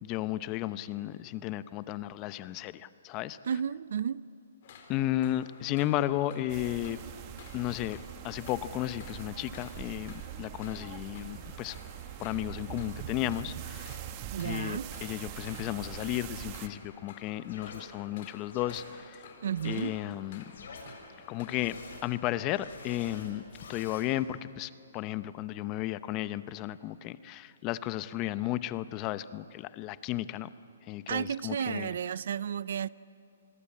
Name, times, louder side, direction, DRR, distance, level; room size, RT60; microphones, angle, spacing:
voice 1, 0.0-3.4 4.9-7.0 7.5-8.0 8.2-11.8 12.2-14.0 14.4-19.2 19.6-20.4 21.3-21.8 22.0-23.4 23.7-30.5 30.9-31.9, left 14 dB, 25° left, 0.7 m, -34 dB
voice 2, 3.4-4.2 14.3-14.9 19.4-20.0 31.1-32.9, right 8 dB, 65° right, 0.5 m, -32 dB
sound 1, 4.6-21.8, left 5 dB, 50° left, 4.2 m, -53 dB
sound 2, 6.5-16.7, right 11 dB, 30° right, 1.3 m, -43 dB
sound 3, 17.5-17.8 18.5-18.8 19.5-19.7 20.5-20.8 21.5-22.0 22.5-24.0, left 5 dB, 70° left, 7.2 m, -47 dB
27.5 x 21.0 x 8.5 m
hypercardioid pair, 150°, 0 cm